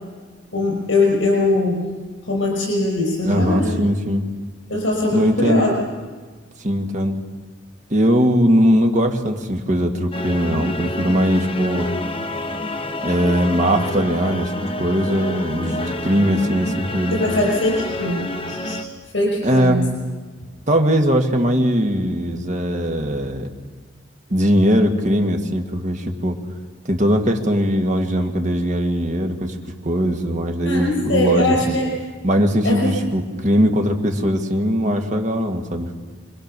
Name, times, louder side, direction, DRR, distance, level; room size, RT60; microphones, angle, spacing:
voice 1, 0.5-1.9 2.2-3.8 4.7-5.7 17.1-18.8 19.1-19.9 30.6-31.9 32.6-33.0, left 2 dB, 80° left, -2 dB, 5.4 m, -21 dB
voice 2, 3.2-4.2 5.1-5.6 6.6-7.2 7.9-11.9 13.0-17.2 19.4-19.8 20.7-23.5 24.3-26.4 26.9-29.5 29.8-31.8 32.2-36.0, equal, 40° right, 4 dB, 2.0 m, -20 dB
sound 1, 10.1-18.8, left 1 dB, 30° left, 1.2 m, -28 dB
26.0 x 21.0 x 6.8 m, 1.4 s
head